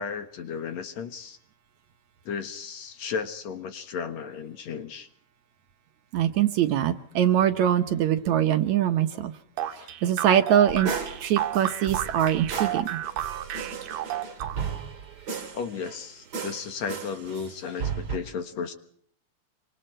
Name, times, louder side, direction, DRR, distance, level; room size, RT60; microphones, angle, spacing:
voice 1, 0.0-1.4 2.3-5.1 9.8-9.9 15.5-18.7, left 6 dB, 60° left, 8 dB, 2.4 m, -34 dB
voice 2, 6.1-9.3 10.0-10.9 11.2-13.0, right 10 dB, 65° right, 8 dB, 2.1 m, -23 dB
sound 1, 9.6-14.9, right 12 dB, 90° right, 2.9 m, -32 dB
sound 2, 10.7-16.1 16.3-18.2, right 6 dB, 35° right, 2.1 m, -35 dB
26.5 x 25.0 x 4.5 m, 0.63 s
omnidirectional pair, 3.9 m